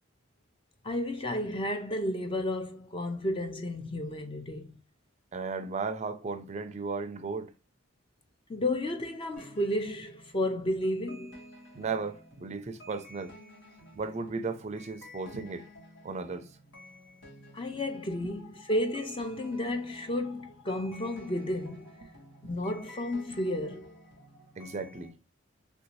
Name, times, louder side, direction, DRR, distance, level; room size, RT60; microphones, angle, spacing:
voice 1, 0.8-4.8 8.5-11.3 17.5-21.9 22.4-23.9, left 1 dB, 25° left, 0.4 m, -32 dB
voice 2, 5.3-7.5 11.7-13.3 14.0-15.7 16.0-16.5 18.2-18.3 22.4-22.5 24.6-25.1, right 4 dB, 35° right, 0.4 m, -35 dB
sound 1, 9.4-25.1, left 1 dB, 70° left, 1.6 m, -52 dB
3.3 x 2.6 x 3.0 m
head